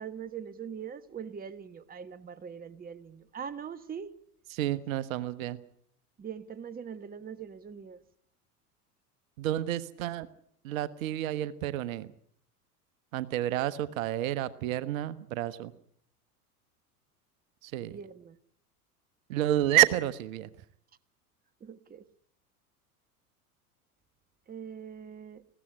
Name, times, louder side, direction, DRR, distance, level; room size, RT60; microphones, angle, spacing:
voice 1, 0.0-4.1 6.2-8.0 17.9-18.4 21.6-22.0 24.5-25.4, right 7 dB, 20° right, 1.3 m, -42 dB
voice 2, 4.5-5.6 9.4-10.3 10.6-12.1 13.1-15.7 17.6-18.0 19.3-20.5, right 14 dB, 60° right, 1.4 m, -29 dB
20.0 x 16.5 x 9.9 m
hypercardioid pair, 85°, 46 cm